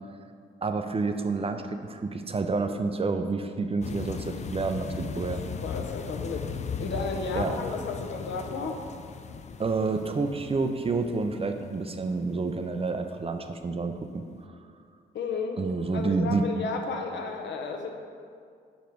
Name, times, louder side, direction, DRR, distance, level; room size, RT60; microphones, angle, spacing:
voice 1, 0.6-5.4 7.3-7.6 9.6-14.2 15.6-16.4, right 4 dB, 30° right, 6 dB, 0.5 m, -29 dB
sound 1, 3.8-12.9 13.4-13.6 13.9-14.0, left 6 dB, 35° left, 0.4 m, -38 dB
voice 2, 5.6-6.5 6.8-8.8 15.1-15.6 15.9-17.9, left 4 dB, 70° left, 3 dB, 0.8 m, -33 dB
5.1 x 5.0 x 4.5 m, 2.2 s
supercardioid pair, 60°, 20 cm